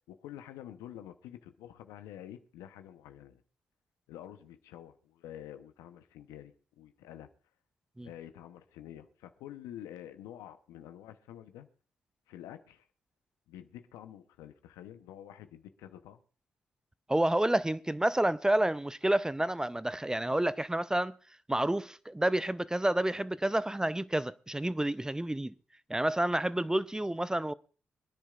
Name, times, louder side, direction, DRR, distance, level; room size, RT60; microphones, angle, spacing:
voice 1, 0.1-3.4 4.1-7.3 8.0-11.7 12.3-12.9 13.5-16.2, left 11 dB, 85° left, 0.8 m, -48 dB
voice 2, 17.1-21.1 21.5-25.5 25.9-27.5, right 1 dB, 10° right, 0.5 m, -29 dB
26.0 x 10.0 x 2.4 m
hypercardioid pair, 40°, 5 cm